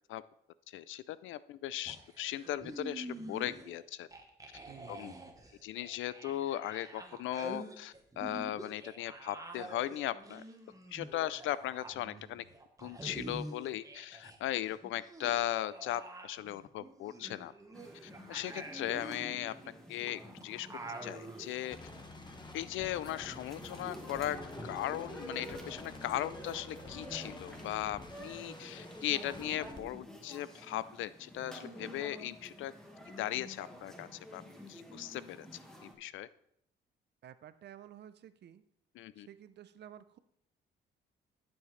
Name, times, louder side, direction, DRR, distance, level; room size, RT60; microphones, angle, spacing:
voice 1, 0.7-4.1 4.9-5.1 5.6-10.4 10.9-12.4 12.8-17.5 18.0-19.5 19.9-20.7 21.0-21.8 22.5-24.4 24.6-32.7 33.2-34.4 34.7-35.5 35.8-36.3 39.0-39.3, left 13 dB, 80° left, 17 dB, 0.4 m, -38 dB
sound 1, 1.9-3.8 4.1-14.4 14.6-21.5, right 2 dB, 15° right, 1.2 m, -47 dB
voice 2, 4.7-5.0 37.2-38.6 39.2-40.2, right 10 dB, 60° right, 13 dB, 0.6 m, -52 dB
sound 2, 17.7-35.9, equal, 5° left, 1.6 m, -49 dB
sound 3, 21.5-29.8, left 3 dB, 20° left, 1.2 m, -51 dB
11.5 x 7.2 x 3.2 m, 0.75 s
cardioid pair, 90°, 20 cm